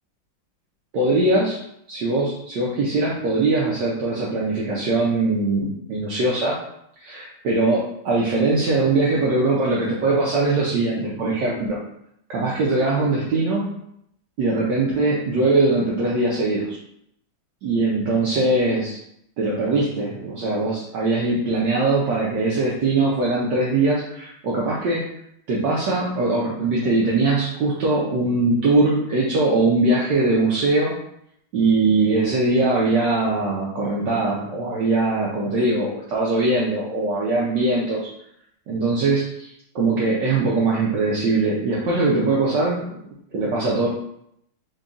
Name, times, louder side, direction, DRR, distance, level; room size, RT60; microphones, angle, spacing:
voice 1, 0.9-1.6 1.9-6.6 7.0-11.8 12.3-13.7 14.4-16.8 17.6-19.0 19.4-25.0 25.5-31.0 31.5-38.0 38.7-39.5 39.7-42.8 43.3-43.9, right 2 dB, 70° right, -5 dB, 1.2 m, -21 dB
3.9 x 2.2 x 3.7 m, 0.75 s
omnidirectional pair, 2.2 m